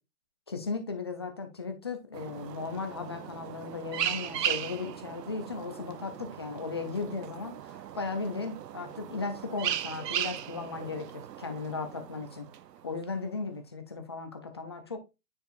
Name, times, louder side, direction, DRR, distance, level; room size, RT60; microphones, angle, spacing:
voice 1, 0.5-12.5 12.8-15.0, left 4 dB, 20° left, 0.3 m, -36 dB
sound 1, 2.1-13.1, right 10 dB, 80° right, 0.7 m, -37 dB
9.2 x 4.8 x 2.4 m
hypercardioid pair, 135°, 48 cm